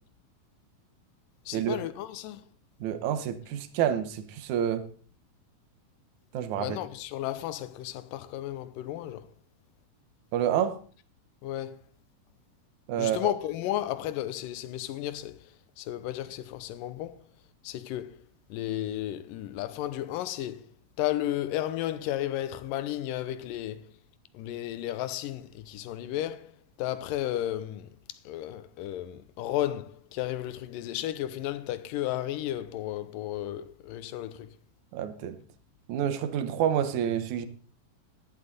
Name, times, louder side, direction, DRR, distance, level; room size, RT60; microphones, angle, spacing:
voice 1, 1.5-2.4 6.6-9.3 11.4-11.8 13.0-15.4 15.8-17.2 17.6-18.2 18.5-20.7 21.0-23.9 24.3-26.5 26.8-27.9 28.3-34.6, left 13 dB, 85° left, 2.4 m, -33 dB
voice 2, 2.8-4.9 6.3-6.8 10.3-10.8 12.9-13.3 34.9-35.4 35.9-37.5, right 9 dB, 70° right, 2.3 m, -28 dB
13.5 x 11.5 x 4.0 m
omnidirectional pair, 3.9 m